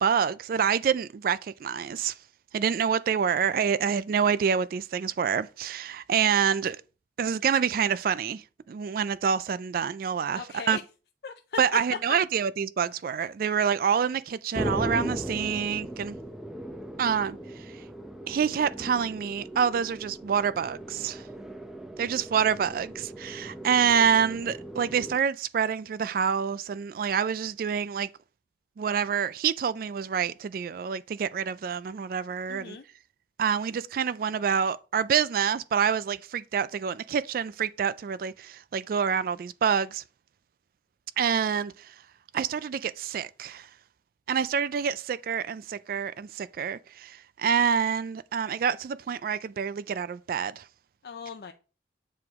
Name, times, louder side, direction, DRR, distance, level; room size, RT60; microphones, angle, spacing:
voice 1, 0.0-2.1 2.5-6.8 7.2-8.4 8.7-10.8 11.6-16.2 17.0-17.4 18.3-21.2 22.0-28.1 28.8-32.8 33.4-40.0 41.2-41.7 42.3-43.7 44.3-50.6, right 7 dB, 55° right, 0.3 m, -27 dB
voice 2, 10.4-10.8 11.2-11.6 32.5-32.8 51.0-51.5, left 6 dB, 60° left, 0.5 m, -38 dB
sound 1, 14.5-25.2, right 1 dB, ahead, 0.7 m, -38 dB
7.8 x 4.8 x 3.6 m
head